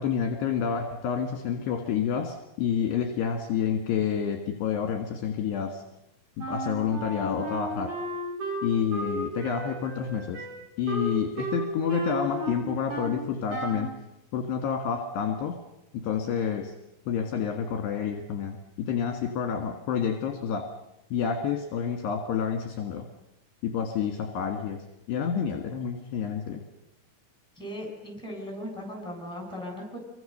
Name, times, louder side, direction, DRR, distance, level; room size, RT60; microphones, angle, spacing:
voice 1, 0.0-5.8 6.5-7.9 8.6-10.4 10.8-13.9 14.3-15.6 16.0-16.7 17.1-18.6 18.9-20.6 21.1-23.1 23.6-24.8 25.1-26.6, left 7 dB, 65° left, 4 dB, 3.6 m, -29 dB
Wind instrument woodwind instrument, 6.4-13.2 13.5-13.9, right 2 dB, 40° right, 6.4 m, -34 dB
voice 2, 27.6-30.0, equal, ahead, 2 dB, 7.3 m, -38 dB
27.5 x 24.0 x 6.8 m, 0.88 s
omnidirectional pair, 5.7 m